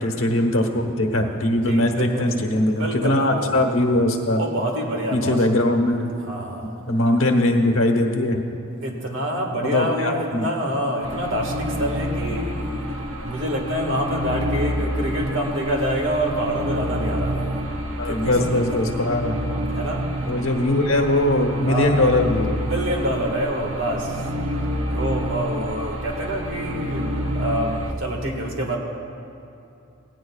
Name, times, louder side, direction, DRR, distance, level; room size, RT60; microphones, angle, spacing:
voice 1, 0.0-4.4 5.1-6.1 6.6-8.4 9.6-10.5 18.0-19.4 20.3-22.6, left 1 dB, 70° left, 3 dB, 1.2 m, -21 dB
voice 2, 1.6-2.3 2.7-3.5 4.4-5.4 6.3-6.7 8.8-12.7 13.2-17.6 18.2-18.8 19.7-20.0 21.6-22.0 22.6-24.1 24.9-27.1 27.3-28.8, equal, 65° right, 1 dB, 1.8 m, -26 dB
sound 1, 11.0-27.9, equal, 90° right, 1.0 m, -28 dB
17.0 x 17.0 x 2.4 m, 2.6 s
head